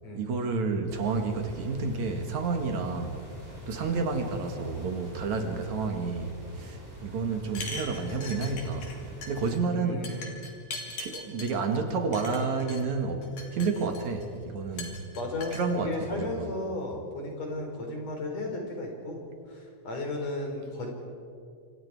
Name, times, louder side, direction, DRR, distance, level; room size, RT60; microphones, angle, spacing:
voice 1, 0.1-3.2 3.7-8.9 9.3-10.3 11.0-15.0 15.5-16.5, right 4 dB, 70° right, 4 dB, 3.2 m, -30 dB
sound 1, 0.9-9.6, equal, 5° right, 4.6 m, -46 dB
sound 2, 7.5-9.0 9.2-9.6 10.0-11.5 12.1-12.8 13.2-14.2 14.8-15.6, left 3 dB, 75° left, 4.2 m, -40 dB
voice 2, 9.7-10.3 14.7-14.8 15.1-19.2 19.5-20.9, left 2 dB, 60° left, 1 dB, 5.4 m, -35 dB
28.0 x 26.5 x 4.8 m, 2.4 s
omnidirectional pair, 3.4 m